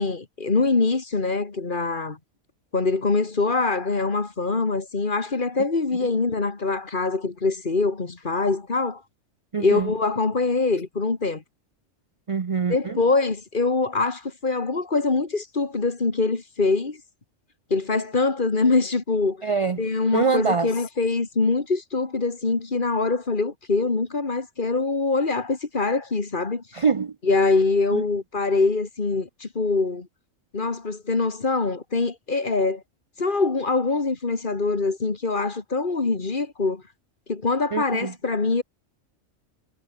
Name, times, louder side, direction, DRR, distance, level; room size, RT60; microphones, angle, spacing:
voice 1, 0.0-2.2 2.7-9.0 9.6-11.4 12.7-17.0 17.7-19.4 19.8-26.8 27.2-30.1 30.5-32.8 33.2-36.8 37.3-38.6, left 3 dB, 40° left, 2.0 m, -24 dB
voice 2, 9.5-9.9 12.3-13.0 19.4-19.8 20.1-20.7 26.7-27.1 27.9-28.0 37.7-38.1, right 5 dB, 40° right, 0.5 m, -24 dB
omnidirectional pair, 1.3 m